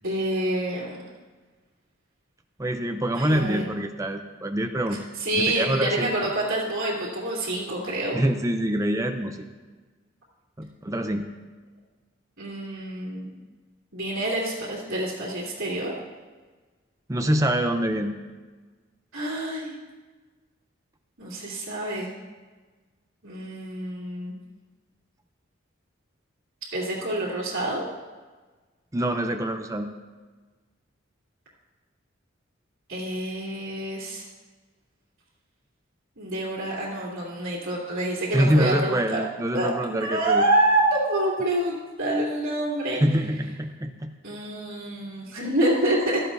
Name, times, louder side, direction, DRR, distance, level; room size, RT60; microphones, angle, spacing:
voice 1, 0.0-1.0 3.2-3.6 5.2-8.2 12.4-13.3 13.9-15.9 19.1-19.7 21.2-22.1 23.2-24.3 26.7-27.8 32.9-34.2 36.2-39.2 39.5-39.7 40.0-43.0 44.2-46.2, right 1 dB, 80° right, -8 dB, 2.9 m, -27 dB
voice 2, 2.6-5.0 5.4-6.2 8.1-9.4 10.6-11.3 17.1-18.1 28.9-29.9 38.3-40.4 42.9-44.1, right 1 dB, 15° right, 5 dB, 0.5 m, -25 dB
15.5 x 13.0 x 2.7 m, 1.3 s
head